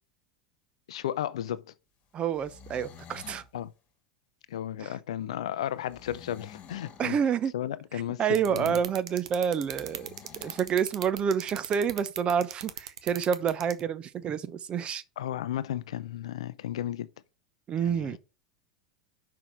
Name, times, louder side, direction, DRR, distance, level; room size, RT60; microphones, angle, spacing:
voice 1, 0.9-1.7 3.5-3.7 4.5-7.2 7.5-8.8 15.2-17.1 17.8-18.2, left 11 dB, 70° left, 0.5 m, -34 dB
voice 2, 2.1-3.4 4.8-4.9 7.0-7.5 7.9-10.1 10.4-15.0 17.7-18.2, right 7 dB, 35° right, 0.8 m, -28 dB
sound 1, 2.3-3.5 5.9-7.1 9.6-10.7, left 7 dB, 40° left, 1.5 m, -49 dB
sound 2, 8.3-13.8, right 10 dB, 70° right, 0.8 m, -37 dB
6.1 x 4.8 x 5.8 m
figure-of-eight pair, 85°, 3 cm